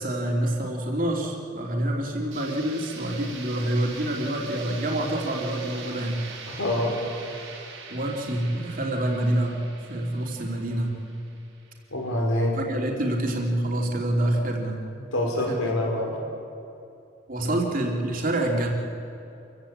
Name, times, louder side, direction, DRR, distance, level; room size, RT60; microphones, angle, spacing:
voice 1, 0.0-6.2 7.9-9.6 9.9-11.0 12.5-14.8 15.5-15.7 17.3-18.7, right 1 dB, 45° right, 0 dB, 3.2 m, -27 dB
sound 1, 2.3-12.1, right 5 dB, 80° right, 4.3 m, -42 dB
voice 2, 6.5-7.0 11.9-12.6 15.0-16.2 17.4-17.5, left 1 dB, 85° left, 0 dB, 5.4 m, -26 dB
27.0 x 15.5 x 8.8 m, 2.7 s
head